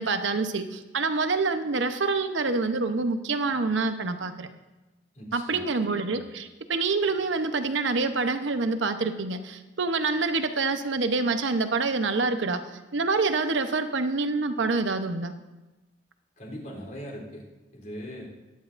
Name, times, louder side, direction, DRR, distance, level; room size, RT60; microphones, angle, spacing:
voice 1, 0.0-4.5 5.3-12.6 12.9-15.3, right 3 dB, 80° right, 8 dB, 0.8 m, -26 dB
voice 2, 5.1-5.7 6.1-6.2 16.4-17.5 17.7-18.3, equal, 45° left, -2 dB, 3.4 m, -40 dB
21.0 x 10.5 x 2.6 m, 1.1 s
head